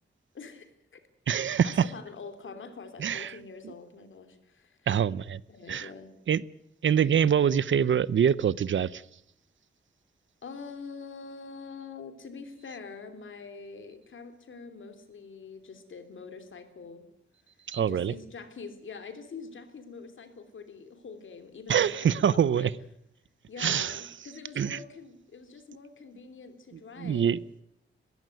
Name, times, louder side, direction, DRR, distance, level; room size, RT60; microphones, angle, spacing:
voice 1, 0.3-1.0 1.6-4.9 5.5-6.1 10.4-17.1 17.8-22.7 23.5-27.4, left 4 dB, 70° left, 3.1 m, -45 dB
voice 2, 1.3-1.8 3.0-3.3 3.6-3.7 4.9-5.4 5.7-5.9 6.3-6.4 6.8-9.0 17.7-18.1 21.7-22.7 23.6-24.0 24.6-24.8 27.0-27.4, right 8 dB, 70° right, 0.7 m, -25 dB
21.0 x 16.0 x 9.2 m
wide cardioid pair, 155°, 21 cm